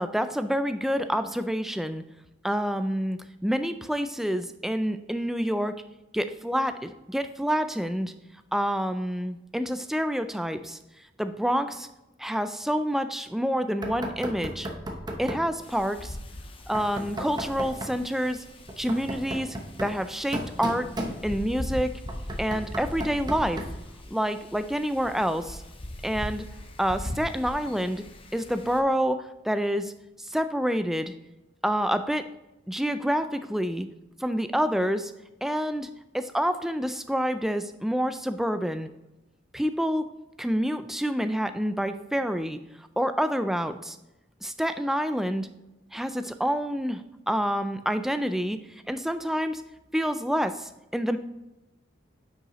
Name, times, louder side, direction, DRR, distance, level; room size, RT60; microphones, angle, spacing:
voice 1, 0.0-2.0 2.4-5.8 6.1-8.1 8.5-10.8 11.2-11.9 12.2-14.7 15.2-16.2 16.7-18.4 18.8-20.9 21.2-22.0 22.4-23.6 24.1-25.6 26.0-26.4 26.8-28.0 28.3-29.9 30.2-31.1 31.6-32.3 32.7-33.9 34.2-35.1 35.4-35.9 36.1-38.9 39.5-40.0 40.4-42.6 43.0-44.0 44.4-45.5 45.9-49.6 49.9-51.2, equal, ahead, 9 dB, 0.3 m, -28 dB
Knock, 13.8-15.5 16.7-18.0 18.7-21.6 22.1-23.9, right 1 dB, 20° right, 0.8 m, -35 dB
Wind, 15.6-28.8, left 1 dB, 30° left, 0.7 m, -40 dB
9.5 x 5.5 x 3.0 m, 0.97 s
head